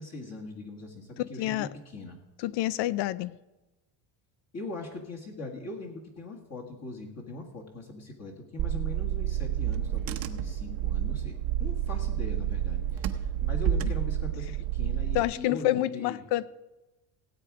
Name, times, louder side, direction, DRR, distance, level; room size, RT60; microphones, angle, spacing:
voice 1, 0.0-1.7 1.9-2.2 4.5-11.3 11.6-16.2, left 2 dB, 30° left, -1 dB, 1.8 m, -41 dB
voice 2, 1.2-1.7 2.4-3.4 15.1-16.5, left 15 dB, 55° left, 18 dB, 0.5 m, -28 dB
Car / Engine, 8.6-15.2, right 10 dB, 45° right, 0.8 m, -29 dB
17.0 x 8.6 x 4.8 m, 1.1 s
cardioid pair, 160°, 50 cm